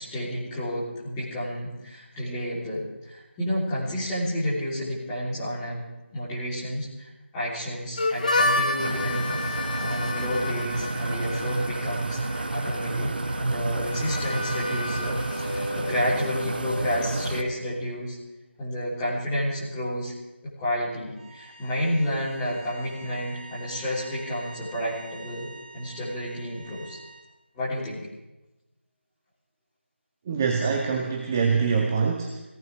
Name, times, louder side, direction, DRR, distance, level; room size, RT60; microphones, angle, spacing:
voice 1, 0.0-13.1 13.4-18.2 18.6-20.1 20.4-25.5 25.7-27.0 27.5-28.1, equal, 10° left, -9 dB, 3.6 m, -30 dB
Harmonica, 8.0-17.6, left 2 dB, 40° left, 1.2 m, -31 dB
sound 1, 8.8-17.4, right 2 dB, 50° right, 1.2 m, -30 dB
sound 2, 21.1-27.3, right 3 dB, 35° right, 5.6 m, -46 dB
voice 2, 30.3-32.4, right 5 dB, 15° right, 2 dB, 0.8 m, -24 dB
23.0 x 17.5 x 3.6 m, 1.0 s
figure-of-eight pair, 170°, 7 cm